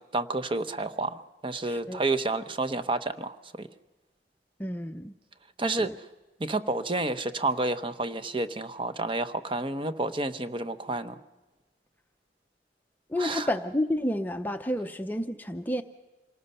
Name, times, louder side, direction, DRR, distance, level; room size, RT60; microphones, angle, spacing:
voice 1, 0.1-3.7 5.6-5.9 6.4-11.2 13.2-13.5, right 2 dB, 30° right, 10 dB, 0.8 m, -30 dB
voice 2, 1.7-2.0 4.6-5.2 5.8-5.9 13.1-15.8, left 1 dB, 10° left, 6 dB, 0.6 m, -30 dB
27.0 x 19.0 x 5.6 m, 1.2 s
head